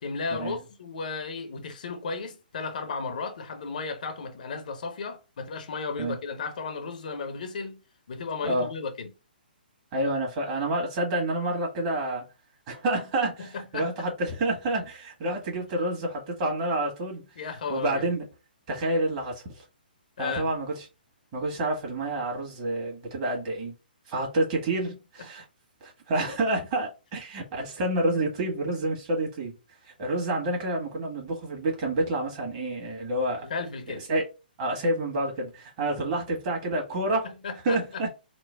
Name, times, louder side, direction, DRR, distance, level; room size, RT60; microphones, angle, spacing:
voice 1, 0.0-7.8 8.1-9.1 13.4-13.9 17.4-18.1 20.2-20.5 33.4-34.1 37.2-38.0, left 4 dB, 55° left, 0.7 m, -34 dB
voice 2, 9.9-12.3 12.7-17.2 17.7-18.2 18.7-19.6 20.2-20.9 21.3-23.7 24.1-25.4 25.8-29.6 29.8-33.5 33.9-34.2 34.6-37.3 37.6-38.1, right 1 dB, 35° right, 1.6 m, -28 dB
3.8 x 2.0 x 3.4 m
figure-of-eight pair, 125°, 5 cm